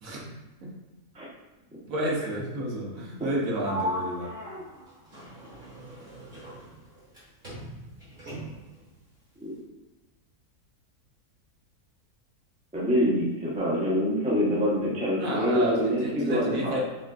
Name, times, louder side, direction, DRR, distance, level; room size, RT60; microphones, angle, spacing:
voice 1, 1.9-4.3 15.2-16.8, right 1 dB, 65° right, -3 dB, 1.1 m, -30 dB
Sliding door, 3.6-7.2 7.4-8.8, equal, 35° right, 1.5 m, -37 dB
voice 2, 12.7-16.8, equal, 10° right, -6 dB, 0.5 m, -25 dB
4.9 x 2.4 x 2.3 m, 1.1 s
omnidirectional pair, 1.6 m